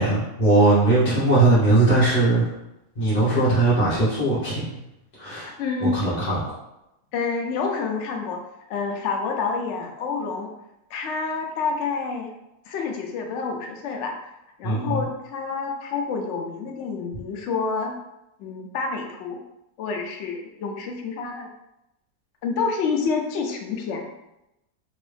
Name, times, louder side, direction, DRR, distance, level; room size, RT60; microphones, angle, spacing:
voice 1, 0.0-2.5 3.0-4.8 5.2-5.5 5.9-6.4 14.6-15.0, right 2 dB, 30° left, -11 dB, 1.0 m, -19 dB
voice 2, 5.6-6.0 7.1-8.4 8.7-10.5 10.9-12.3 12.7-14.1 14.6-17.9 18.4-19.4 19.8-21.5 22.4-24.1, left 4 dB, 75° left, 3 dB, 0.6 m, -28 dB
2.9 x 2.6 x 3.3 m, 0.88 s
omnidirectional pair, 1.8 m